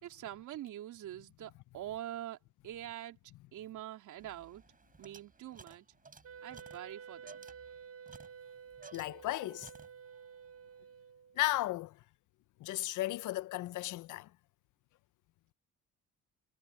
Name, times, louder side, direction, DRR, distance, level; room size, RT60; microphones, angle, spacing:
voice 1, 0.0-2.4 2.6-3.2 3.5-4.6 5.0-5.9 6.4-7.5, right 12 dB, 80° right, 3.1 m, -44 dB
sound 1, 4.2-9.4 9.6-10.3, right 4 dB, 30° right, 5.1 m, -57 dB
Wind instrument woodwind instrument, 6.2-11.4, right 7 dB, 50° right, 1.1 m, -51 dB
voice 2, 8.9-9.7 11.4-12.0 12.6-14.3, left 17 dB, 80° left, 0.6 m, -35 dB
cardioid pair, 90°, 30 cm